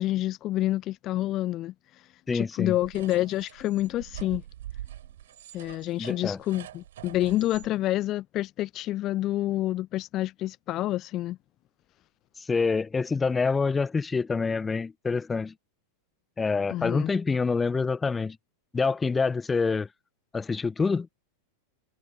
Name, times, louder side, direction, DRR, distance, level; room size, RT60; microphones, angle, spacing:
voice 1, 0.0-1.7 2.3-4.4 5.5-11.4 16.7-17.1, left 15 dB, 35° left, 0.8 m, -28 dB
voice 2, 2.3-2.7 6.0-6.4 12.5-15.5 16.4-18.4 18.7-19.9 20.3-21.1, left 4 dB, 15° left, 0.9 m, -26 dB
sound 1, 2.8-7.7, right 12 dB, 60° right, 7.0 m, -44 dB
figure-of-eight pair, 90°, 0 cm